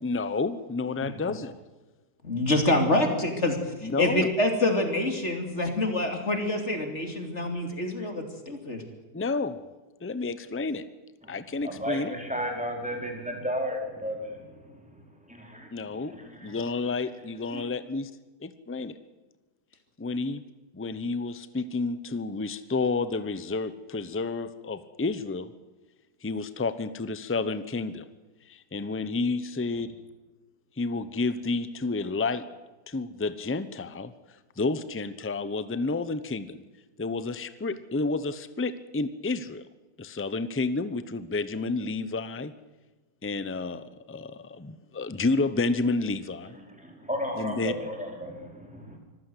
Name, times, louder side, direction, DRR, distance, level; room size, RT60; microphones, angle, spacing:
voice 1, 0.0-1.5 3.8-4.3 9.1-9.6 10.0-10.8 11.3-12.1 15.7-16.1 16.4-18.1 18.4-19.0 20.0-20.4 20.7-25.5 26.2-28.1 28.5-29.9 30.8-32.4 32.9-34.1 34.6-36.6 37.0-39.6 40.0-42.5 43.2-46.6 47.4-47.7, left 3 dB, 10° left, 13 dB, 0.6 m, -30 dB
voice 2, 2.2-8.8, left 1 dB, 40° left, 5 dB, 3.3 m, -26 dB
voice 3, 11.2-16.7 17.5-17.6 46.5-49.0, equal, 5° right, 1 dB, 4.7 m, -35 dB
25.5 x 15.0 x 8.0 m, 1.2 s
omnidirectional pair, 1.8 m